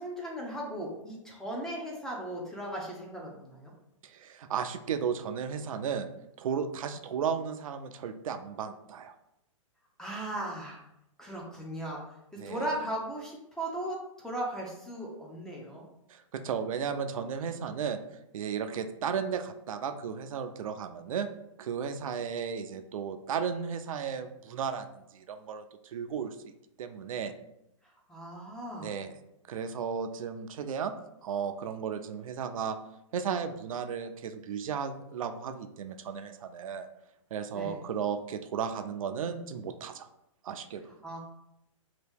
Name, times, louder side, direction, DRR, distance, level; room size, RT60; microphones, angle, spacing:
voice 1, 0.0-3.7 10.0-10.8 11.2-12.0 12.3-15.8 28.1-29.0 37.5-37.8 41.0-41.2, right 1 dB, 5° left, -2 dB, 0.5 m, -37 dB
voice 2, 4.0-6.1 6.4-9.1 12.4-12.7 16.1-18.0 18.3-21.3 21.6-26.4 26.8-27.3 28.8-29.1 29.5-30.9 31.2-32.8 33.1-36.9 37.3-40.1 40.4-40.9, right 7 dB, 80° right, 9 dB, 0.4 m, -34 dB
2.8 x 2.6 x 3.4 m, 0.83 s
hypercardioid pair, 145°, 17 cm